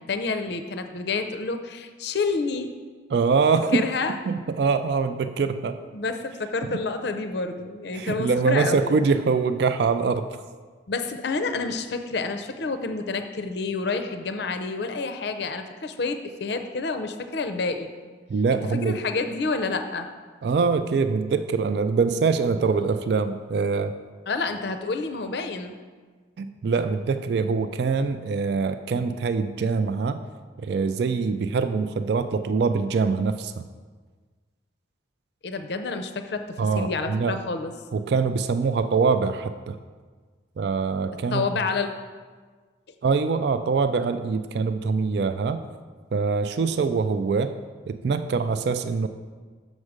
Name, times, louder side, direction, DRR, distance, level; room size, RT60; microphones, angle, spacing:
voice 1, 0.1-2.7 3.7-4.2 5.9-8.9 10.9-17.9 18.5-20.1 24.3-25.7 35.4-37.7 41.3-41.9, left 4 dB, 60° left, 7 dB, 0.5 m, -29 dB
voice 2, 3.1-3.9 4.3-5.8 7.9-10.3 18.3-19.0 20.4-23.9 26.4-30.2 30.6-33.7 36.6-37.4 37.9-39.8 40.6-41.5 43.0-45.6 46.1-47.6 47.9-49.1, right 4 dB, 55° right, 10 dB, 0.3 m, -24 dB
6.4 x 4.8 x 6.4 m, 1.5 s
head